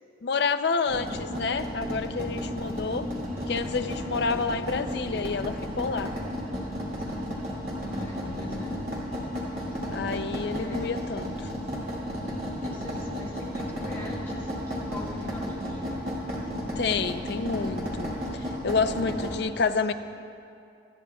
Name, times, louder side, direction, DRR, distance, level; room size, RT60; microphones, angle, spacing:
voice 1, 0.2-3.1 3.5-6.1 8.3-8.7 9.9-11.5 16.8-19.9, left 4 dB, 55° left, 10 dB, 0.4 m, -29 dB
sound 1, 0.9-19.3, equal, 50° right, 2.6 m, -33 dB
voice 2, 6.4-7.3 7.7-8.8 9.7-9.8 10.5-11.1 12.6-16.3 18.8-19.9, left 1 dB, 10° left, -5 dB, 1.6 m, -43 dB
26.5 x 9.7 x 2.3 m, 2.5 s
head